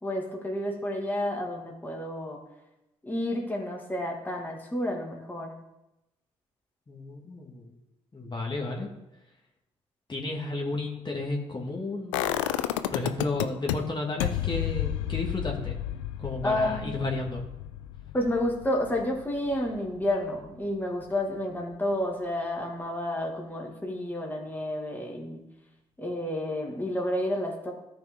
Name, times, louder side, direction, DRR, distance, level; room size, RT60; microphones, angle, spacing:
voice 1, 0.0-2.4 3.0-5.5 16.4-16.9 18.1-25.4 26.0-27.7, left 1 dB, 10° left, -1 dB, 2.2 m, -30 dB
voice 2, 6.9-7.8 8.1-8.9 10.1-12.3 12.9-15.8 16.2-17.4, left 2 dB, 30° left, -1 dB, 2.2 m, -32 dB
sound 1, 12.1-13.7 14.2-20.0 20.4-20.5, left 13 dB, 80° left, 0.5 m, -31 dB
13.5 x 6.0 x 3.7 m, 0.93 s
hypercardioid pair, 45°, 15 cm